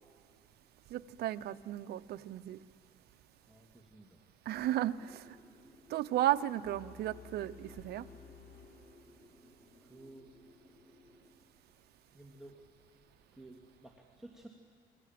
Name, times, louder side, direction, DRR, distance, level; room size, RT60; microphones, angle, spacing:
voice 1, 0.9-2.6 4.5-5.3 5.9-8.1, right 13 dB, 70° right, 12 dB, 0.8 m, -34 dB
voice 2, 3.5-4.2 9.8-10.3 12.1-12.7 13.3-14.5, right 2 dB, ahead, -1 dB, 2.7 m, -54 dB
sound 1, 5.0-11.3, left 1 dB, 15° left, 6.1 m, -61 dB
sound 2, 6.6-9.7, left 6 dB, 65° left, 3.9 m, -56 dB
28.0 x 23.0 x 7.7 m, 2.1 s
cardioid pair, 110°, 17 cm